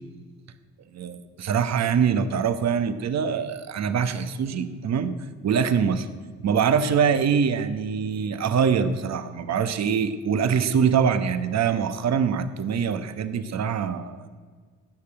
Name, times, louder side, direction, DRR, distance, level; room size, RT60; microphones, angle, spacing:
voice 1, 0.9-5.1 5.4-6.1 6.4-14.3, right 7 dB, 60° right, 11 dB, 1.2 m, -24 dB
16.5 x 6.8 x 8.8 m, 1.5 s
cardioid pair, 90°, 30 cm